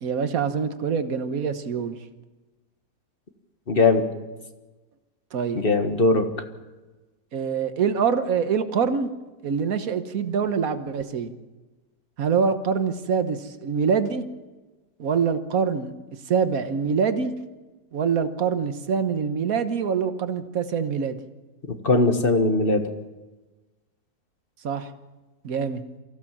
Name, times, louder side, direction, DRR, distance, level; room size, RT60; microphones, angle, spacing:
voice 1, 0.0-2.0 5.3-5.6 7.3-9.1 9.4-11.4 12.2-14.2 15.0-15.9 16.3-17.3 17.9-21.2 24.6-24.9 25.4-25.8, right 6 dB, 60° right, 9 dB, 1.6 m, -25 dB
voice 2, 3.7-4.0 5.5-6.3 21.8-22.8, left 3 dB, 35° left, 6 dB, 1.5 m, -19 dB
24.0 x 15.5 x 7.3 m, 1.2 s
omnidirectional pair, 1.7 m